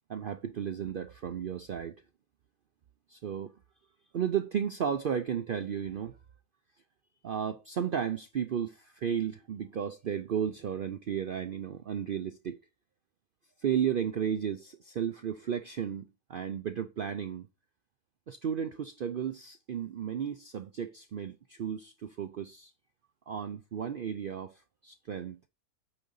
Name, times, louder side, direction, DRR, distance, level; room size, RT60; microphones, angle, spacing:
voice 1, 0.1-2.0 3.1-3.5 4.1-6.1 7.2-12.6 13.6-17.5 18.3-22.7 23.3-25.4, right 8 dB, 85° right, 0.4 m, -34 dB
8.7 x 3.8 x 5.4 m
omnidirectional pair, 1.6 m